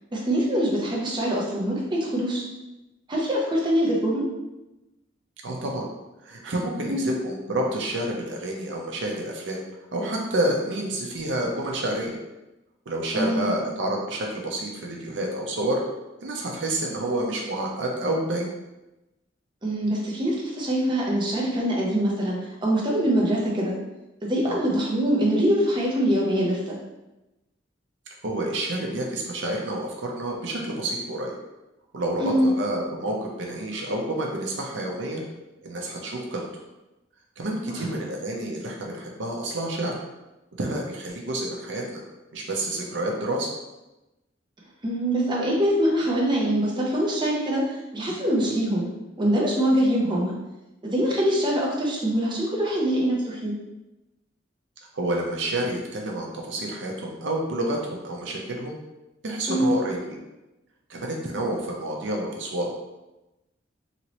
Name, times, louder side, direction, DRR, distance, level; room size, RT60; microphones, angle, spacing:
voice 1, 0.1-2.4 3.1-4.3 6.9-7.2 13.1-13.5 19.6-23.8 24.2-26.8 32.2-32.5 37.7-37.8 44.8-48.9 49.2-50.3 50.8-53.5 59.5-59.7, equal, 25° right, -3 dB, 0.6 m, -24 dB
voice 2, 5.4-5.9 6.2-9.6 9.9-12.2 12.9-15.8 16.2-18.5 24.5-24.6 28.2-31.3 31.9-35.2 35.6-36.5 37.4-40.0 40.6-42.0 42.3-43.5 54.9-58.8 59.2-60.2 60.9-62.7, right 1 dB, 70° right, -1 dB, 0.5 m, -29 dB
2.9 x 2.8 x 2.8 m, 1.0 s
head